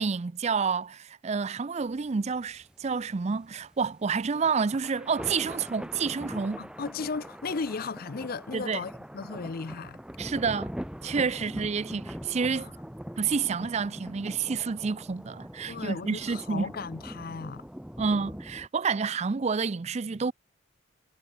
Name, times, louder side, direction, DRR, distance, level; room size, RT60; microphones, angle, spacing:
voice 1, 0.0-6.6 8.5-8.8 10.2-10.7 11.0-12.7 13.2-16.7 18.0-20.3, right 5 dB, 35° right, 0.4 m, -29 dB
sound 1, 1.8-18.7, equal, 5° right, 1.2 m, -42 dB
voice 2, 6.6-10.0 12.5-12.7 15.7-17.7, left 4 dB, 50° left, 0.6 m, -36 dB
head